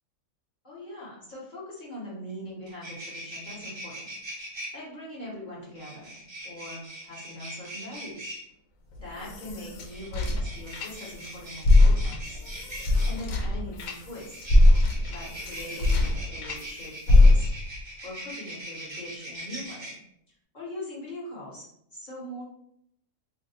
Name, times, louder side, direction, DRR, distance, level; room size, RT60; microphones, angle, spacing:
voice 1, 0.6-4.1 4.7-6.2 6.4-8.3 9.0-12.4 13.0-14.5 15.1-17.4 18.0-20.0 20.5-22.4, left 1 dB, 40° left, -5 dB, 1.0 m, -41 dB
sound 1, 2.3-2.4 2.6-4.7 5.8-8.4 9.8-13.2 14.1-19.9, right 1 dB, 25° right, 0.7 m, -41 dB
sound 2, 8.9-11.3 11.6-16.6 17.1-17.8, left 2 dB, 90° left, 1.0 m, -22 dB
2.7 x 2.1 x 4.0 m, 0.71 s
omnidirectional pair, 1.4 m